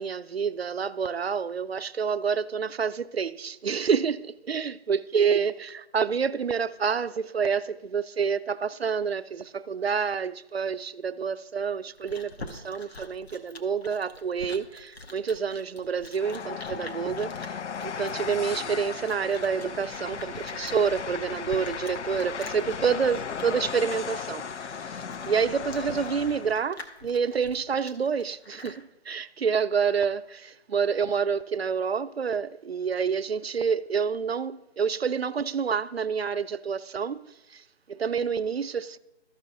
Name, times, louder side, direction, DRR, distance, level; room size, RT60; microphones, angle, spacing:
voice 1, 0.0-17.5 17.8-24.4 24.8-37.6 37.9-39.0, right 6 dB, 65° right, 0.5 m, -28 dB
Chewing mastication, 11.6-28.8, left 2 dB, 65° left, 1.2 m, -46 dB
Train, 16.1-26.6, left 6 dB, 85° left, 0.6 m, -36 dB
13.5 x 5.6 x 3.8 m
figure-of-eight pair, 170°, 34 cm